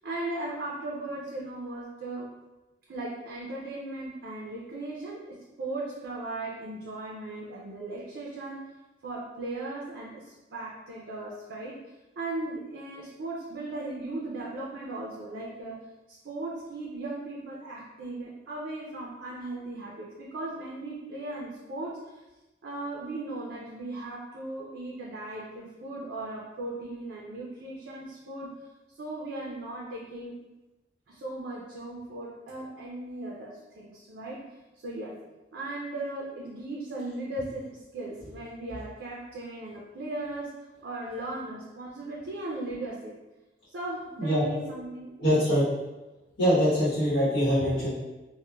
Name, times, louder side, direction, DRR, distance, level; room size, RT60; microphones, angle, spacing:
voice 1, 0.0-2.3 2.9-8.6 9.0-11.8 12.2-15.8 16.1-22.2 22.6-28.5 29.0-30.3 31.1-34.4 34.8-35.2 35.5-40.5 40.8-43.2 43.7-45.4, right 2 dB, 70° right, -4 dB, 0.4 m, -37 dB
voice 2, 45.2-45.6 46.4-47.9, equal, 85° left, -11 dB, 1.1 m, -23 dB
3.1 x 2.1 x 2.2 m, 1.1 s
head